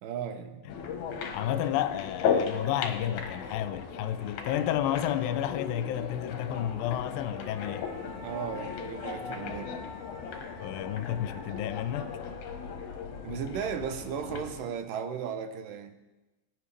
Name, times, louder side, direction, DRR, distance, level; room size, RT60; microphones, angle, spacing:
voice 1, 0.0-0.6 8.2-9.8 13.2-15.9, right 7 dB, 75° right, 2.4 m, -35 dB
sound 1, 0.7-14.7, left 6 dB, 65° left, 2.3 m, -36 dB
sound 2, 1.1-1.2 1.5-5.2 6.9-14.1, left 3 dB, 5° right, 1.9 m, -50 dB
voice 2, 1.3-7.9 10.6-12.2, left 11 dB, 80° left, 2.3 m, -31 dB
22.0 x 10.0 x 3.4 m
omnidirectional pair, 4.2 m